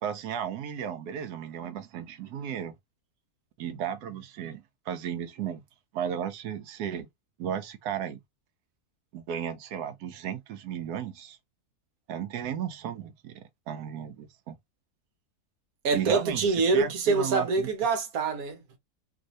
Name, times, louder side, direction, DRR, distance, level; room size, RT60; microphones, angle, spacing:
voice 1, 0.0-2.7 3.6-5.6 5.9-7.1 7.4-8.2 9.1-11.4 12.1-14.5 15.9-17.7, right 8 dB, 85° right, 1.2 m, -34 dB
voice 2, 15.8-18.8, right 4 dB, 70° right, 1.4 m, -25 dB
3.1 x 2.6 x 3.0 m
omnidirectional pair, 1.6 m